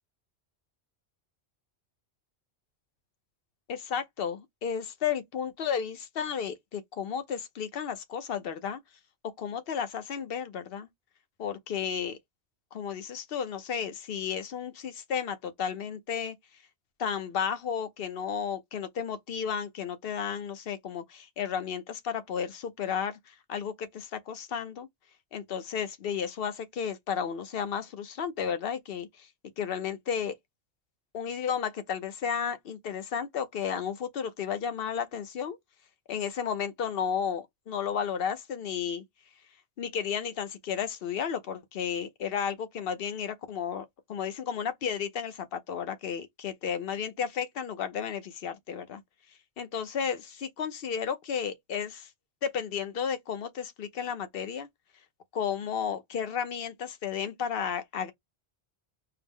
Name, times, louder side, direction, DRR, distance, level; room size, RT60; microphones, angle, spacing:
voice 1, 3.7-8.8 9.4-10.9 11.4-12.2 12.7-16.3 17.0-24.9 25.3-29.3 29.6-30.3 31.1-35.6 36.1-39.0 39.8-49.0 49.6-52.1 52.4-54.7 55.3-58.1, left 7 dB, 60° left, 0.9 m, -33 dB
4.7 x 2.1 x 3.5 m
omnidirectional pair, 1.1 m